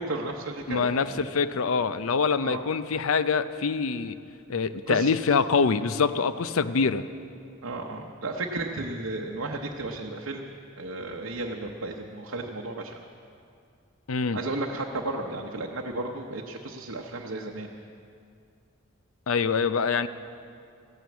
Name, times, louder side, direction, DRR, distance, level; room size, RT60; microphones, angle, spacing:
voice 1, 0.0-1.2 2.4-2.6 4.9-5.1 7.6-13.0 14.3-17.7, right 2 dB, 70° right, 0 dB, 0.8 m, -34 dB
voice 2, 0.7-4.2 4.5-7.0 14.1-14.4 19.3-20.1, left 5 dB, 75° left, 13 dB, 0.5 m, -25 dB
14.5 x 9.3 x 8.3 m, 2.5 s
head